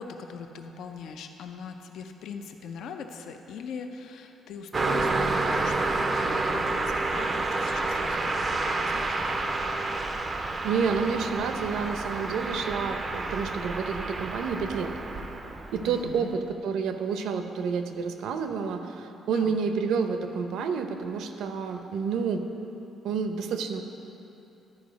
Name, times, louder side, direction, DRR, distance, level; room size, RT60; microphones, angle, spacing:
voice 1, 0.0-9.3 15.8-16.4 19.3-19.6, left 5 dB, 65° left, 6 dB, 0.5 m, -41 dB
Car passing by, 4.7-16.2, right 3 dB, 20° right, 0.4 m, -29 dB
voice 2, 10.6-14.9 15.7-22.5 23.0-23.8, right 6 dB, 75° right, 7 dB, 0.6 m, -29 dB
12.0 x 4.7 x 5.1 m, 2.9 s
cardioid pair, 170°, 0 cm